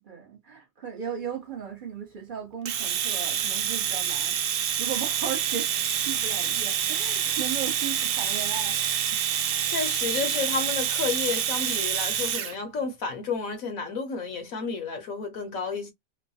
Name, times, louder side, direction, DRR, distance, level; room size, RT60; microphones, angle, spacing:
voice 1, 0.0-8.8 9.1-9.2, right 8 dB, 40° right, 0.8 m, -36 dB
Domestic sounds home sounds, 2.7-12.5, right 9 dB, 75° right, 1.1 m, -27 dB
voice 2, 9.7-15.9, left 5 dB, 65° left, 1.1 m, -31 dB
3.1 x 2.1 x 2.6 m
omnidirectional pair, 1.7 m